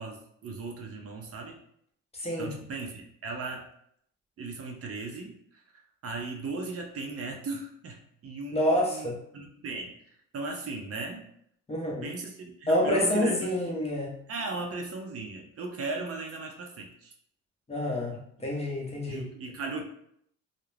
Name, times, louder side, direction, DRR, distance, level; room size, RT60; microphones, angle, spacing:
voice 1, 0.0-1.6 2.4-3.7 4.4-5.6 6.0-9.9 10.3-11.2 12.0-13.5 14.3-17.1 18.1-18.2 19.1-19.8, right 3 dB, 50° right, 2 dB, 0.6 m, -37 dB
voice 2, 2.1-2.5 8.5-9.2 11.7-12.1 12.7-14.2 17.7-19.3, left 1 dB, 20° left, -2 dB, 0.7 m, -28 dB
2.4 x 2.0 x 3.1 m, 0.69 s
cardioid pair, 90°, 30 cm